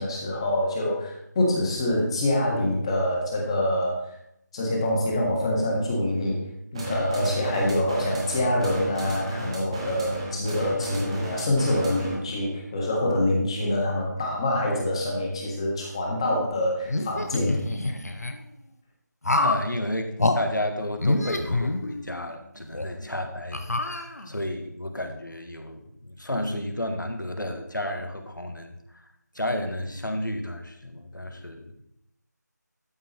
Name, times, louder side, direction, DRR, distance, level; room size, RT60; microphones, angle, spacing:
voice 1, 0.0-4.0 4.5-6.4 6.7-17.6, left 1 dB, 15° left, -1 dB, 1.5 m, -25 dB
sound 1, 6.7-12.3, right 1 dB, 20° right, 1.3 m, -32 dB
sound 2, 16.9-18.3 19.2-19.7 20.2-20.4 21.0-22.2 22.7-22.8 23.5-24.4, left 2 dB, 60° left, 1.1 m, -26 dB
voice 2, 19.3-29.1 29.3-31.7, left 1 dB, 85° left, 5 dB, 1.7 m, -32 dB
12.5 x 4.6 x 4.3 m, 0.78 s
figure-of-eight pair, 165°, 10 cm